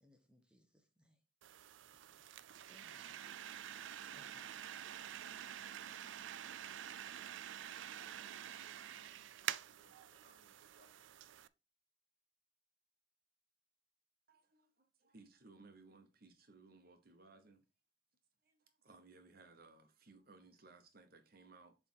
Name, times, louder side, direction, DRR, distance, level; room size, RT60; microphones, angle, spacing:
voice 1, 0.0-1.2 1.9-2.4 2.7-3.2 4.1-4.4 5.0-5.2, left 1 dB, 5° right, 0.9 m, -69 dB
sound 1, 1.4-11.5, right 10 dB, 90° right, 0.4 m, -48 dB
voice 2, 5.2-6.2 6.6-7.5 7.9-10.9, equal, 50° left, 1.7 m, -71 dB
voice 3, 14.3-17.6 18.4-21.7, right 3 dB, 55° right, 1.1 m, -62 dB
7.3 x 3.5 x 4.5 m
head